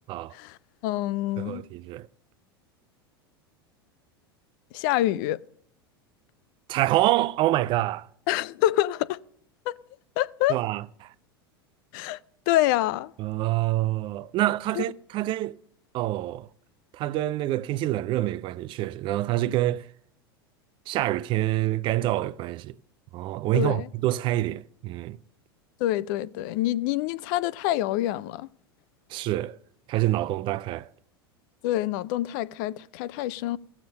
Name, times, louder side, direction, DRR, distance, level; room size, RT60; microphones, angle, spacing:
voice 1, 0.8-1.6 4.7-5.4 8.3-9.2 9.7-9.8 10.2-10.5 11.9-12.2 12.5-13.1 14.8-14.9 23.5-23.9 25.8-28.5 31.6-33.6, left 14 dB, 55° left, 0.4 m, -26 dB
voice 2, 1.4-2.1 6.7-8.1 10.5-11.1 13.2-15.6 15.9-16.5 16.9-19.9 20.9-22.7 23.1-25.2 29.1-29.6 29.9-30.9, right 15 dB, 40° right, 0.4 m, -26 dB
15.0 x 7.2 x 6.4 m
hypercardioid pair, 85°, 13 cm